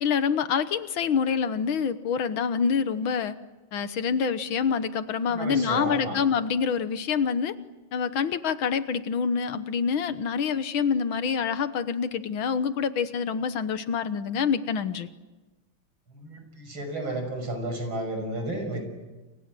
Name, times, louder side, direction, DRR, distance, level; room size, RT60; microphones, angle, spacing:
voice 1, 0.0-3.4 3.7-7.6 7.9-15.1, left 6 dB, 80° left, 12 dB, 2.0 m, -26 dB
voice 2, 5.3-6.2 16.1-18.8, right 1 dB, 80° right, 6 dB, 7.0 m, -32 dB
30.0 x 25.5 x 7.7 m, 1.2 s
omnidirectional pair, 2.2 m